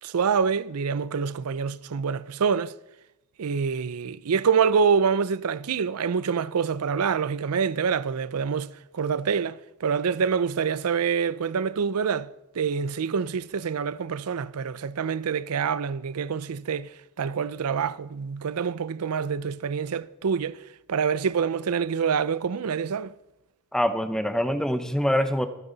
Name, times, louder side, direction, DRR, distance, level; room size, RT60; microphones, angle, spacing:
voice 1, 0.0-2.7 3.4-16.9 17.2-20.6 20.9-23.1, right 6 dB, 80° right, 0.5 m, -26 dB
voice 2, 23.7-25.5, equal, 5° left, 0.8 m, -24 dB
24.5 x 9.3 x 4.0 m
head